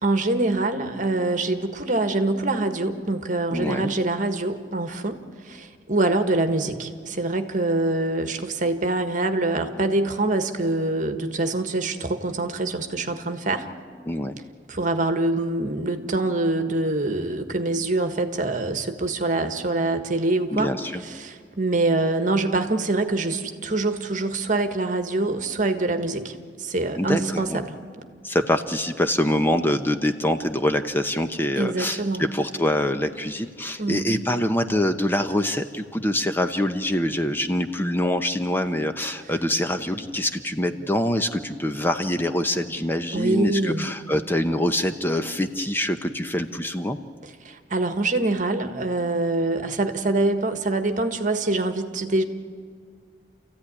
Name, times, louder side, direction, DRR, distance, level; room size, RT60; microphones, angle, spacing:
voice 1, 0.0-5.2 5.4-13.7 14.7-20.7 21.0-27.7 31.6-32.2 33.8-34.1 43.1-43.9 47.2-52.2, right 2 dB, 45° right, 8 dB, 1.5 m, -25 dB
voice 2, 3.5-3.9 14.1-14.4 20.5-21.0 27.0-27.6 28.2-47.0, left 1 dB, 10° left, 7 dB, 0.8 m, -25 dB
28.5 x 15.0 x 9.8 m, 2.1 s
head